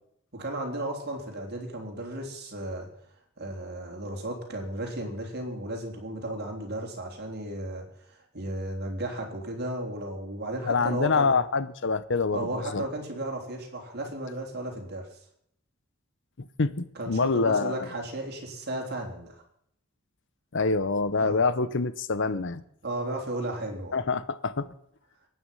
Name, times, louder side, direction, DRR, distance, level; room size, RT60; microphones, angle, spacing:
voice 1, 0.3-2.9 3.4-11.4 12.3-15.2 16.9-19.4 21.2-21.4 22.8-24.0, right 1 dB, 50° right, 3.8 m, -34 dB
voice 2, 10.6-12.8 16.6-17.7 20.5-22.6 23.9-24.7, left 4 dB, 60° left, 0.8 m, -26 dB
22.5 x 9.4 x 5.5 m
head